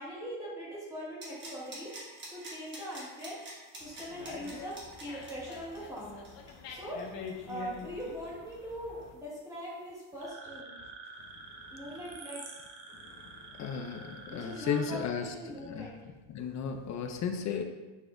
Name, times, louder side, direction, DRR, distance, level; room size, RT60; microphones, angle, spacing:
voice 1, 0.0-3.4 3.8-6.3 6.7-7.0 7.5-10.7 11.7-12.4 14.3-15.9, equal, 5° right, -8 dB, 1.8 m, -41 dB
sound 1, 1.2-8.7 9.0-9.1, right 1 dB, 25° right, 1.2 m, -47 dB
Dog, 3.8-9.1, left 5 dB, 65° left, 0.9 m, -46 dB
sound 2, 10.2-15.0, right 3 dB, 50° right, 1.2 m, -48 dB
voice 2, 11.3-11.7 12.9-15.9 16.3-17.6, left 6 dB, 40° left, 6 dB, 0.4 m, -36 dB
9.3 x 4.1 x 2.5 m, 1.2 s
cardioid pair, 170°, 47 cm